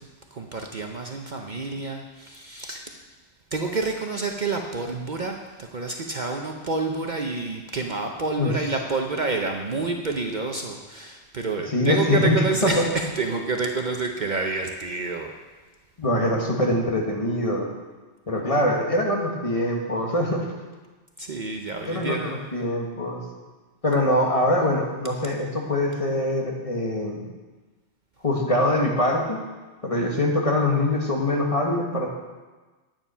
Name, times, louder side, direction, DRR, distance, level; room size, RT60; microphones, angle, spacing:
voice 1, 0.3-2.8 3.5-15.3 21.2-22.4, right 3 dB, 45° right, 3 dB, 0.8 m, -28 dB
voice 2, 11.7-12.9 16.0-17.7 18.3-20.4 21.8-23.2 23.8-27.3 28.2-29.4 29.8-32.1, left 1 dB, 30° left, -1 dB, 1.6 m, -23 dB
9.9 x 9.1 x 5.6 m, 1.3 s
omnidirectional pair, 1.2 m